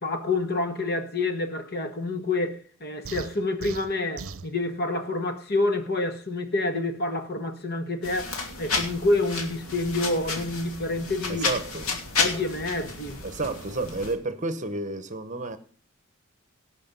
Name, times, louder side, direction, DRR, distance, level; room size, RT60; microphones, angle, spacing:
voice 1, 0.0-11.5 12.2-13.2, left 2 dB, 45° left, 1.5 m, -28 dB
sound 1, 3.0-4.5, right 5 dB, 65° right, 0.7 m, -39 dB
sound 2, 8.0-14.1, left 4 dB, 75° left, 2.8 m, -31 dB
voice 2, 11.3-11.9 13.2-15.6, right 2 dB, 35° right, 0.9 m, -31 dB
18.0 x 6.3 x 5.4 m
head